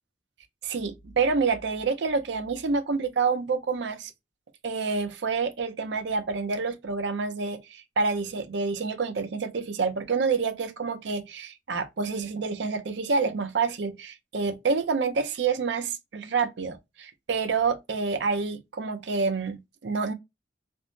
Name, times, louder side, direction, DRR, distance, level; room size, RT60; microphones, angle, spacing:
voice 1, 0.6-4.1 4.6-20.1, right 4 dB, 80° right, 0.5 m, -28 dB
3.4 x 2.0 x 2.6 m
head